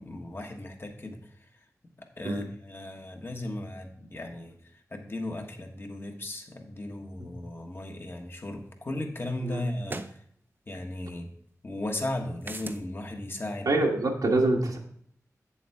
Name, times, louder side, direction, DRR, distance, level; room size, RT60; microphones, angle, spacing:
voice 1, 0.0-1.5 2.0-10.2 10.7-11.3 11.6-13.7, left 1 dB, 40° left, 3 dB, 1.4 m, -36 dB
sound 1, 8.5-8.6 9.8-10.2 12.4-12.8, right 2 dB, 35° right, 0.6 m, -37 dB
voice 2, 13.6-14.8, right 2 dB, 90° right, -1 dB, 1.5 m, -25 dB
8.6 x 7.1 x 3.5 m, 0.65 s
wide cardioid pair, 100°, 6 cm